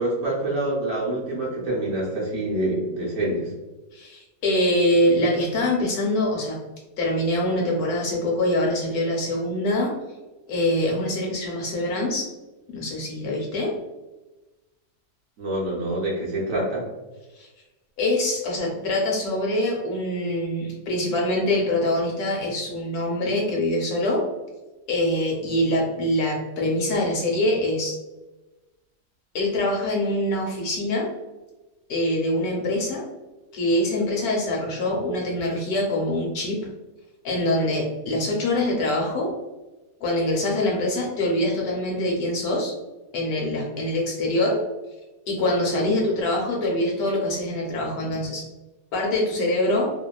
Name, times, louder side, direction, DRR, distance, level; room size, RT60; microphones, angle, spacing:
voice 1, 0.0-3.5 15.4-16.8, right 1 dB, 60° right, -5 dB, 1.0 m, -26 dB
voice 2, 3.9-6.6 7.0-9.9 10.5-12.3 12.7-13.7 17.4-17.5 18.0-24.2 24.9-28.0 29.3-31.1 31.9-33.0 33.5-36.6 37.2-39.3 40.0-42.7 43.1-44.6 45.3-48.4 48.9-49.9, left 1 dB, 70° left, -1 dB, 1.0 m, -24 dB
2.8 x 2.1 x 2.2 m, 1.1 s
omnidirectional pair, 1.8 m